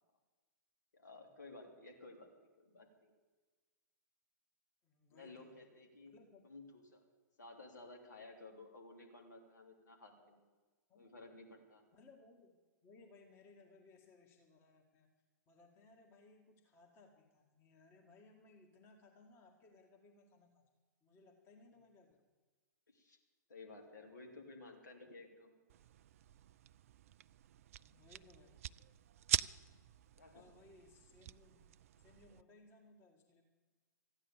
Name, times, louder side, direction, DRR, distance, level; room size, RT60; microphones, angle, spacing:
voice 1, 0.9-2.3 2.6-3.1 5.1-6.1 6.4-7.0 7.4-10.4 10.9-11.8 22.9-23.2 23.5-25.5 30.2-30.4, left 2 dB, 70° left, 2 dB, 3.2 m, -55 dB
voice 2, 4.8-5.7 6.1-6.5 10.9-11.4 11.9-15.1 15.5-20.7 21.0-22.2 27.8-28.6 30.3-31.7 32.0-33.4, left 3 dB, 25° left, 1 dB, 1.8 m, -64 dB
sound 1, 25.7-32.4, right 11 dB, 50° right, 0.4 m, -44 dB
14.5 x 10.0 x 8.4 m, 1.3 s
figure-of-eight pair, 110°, 10 cm